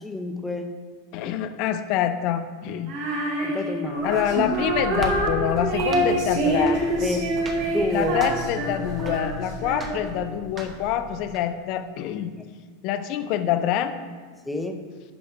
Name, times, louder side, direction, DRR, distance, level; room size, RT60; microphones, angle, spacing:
voice 1, 0.0-0.7 3.4-4.2 7.0-7.3 7.6-8.2 12.4-12.5 14.5-14.8, left 2 dB, 5° left, 5 dB, 0.7 m, -29 dB
voice 2, 1.1-2.9 4.0-6.8 7.9-12.3 12.8-13.9, left 10 dB, 50° left, 10 dB, 0.6 m, -26 dB
Female singing, 2.9-10.2, right 1 dB, 60° right, 2.0 m, -26 dB
sound 1, 3.9-11.4, right 1 dB, 25° right, 1.0 m, -36 dB
9.6 x 5.2 x 3.6 m, 1.5 s
supercardioid pair, 140°, 0 cm